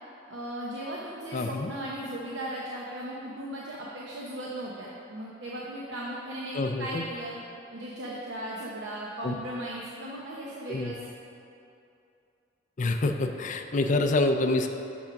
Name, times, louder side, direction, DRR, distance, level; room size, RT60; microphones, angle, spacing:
voice 1, 0.3-7.4 7.7-11.1, right 1 dB, 80° right, -4 dB, 0.8 m, -37 dB
voice 2, 1.3-1.7 6.5-7.0 9.2-9.3 10.7-10.9 12.8-14.7, left 2 dB, 45° left, 5 dB, 0.5 m, -26 dB
6.4 x 6.1 x 5.8 m, 2.7 s
head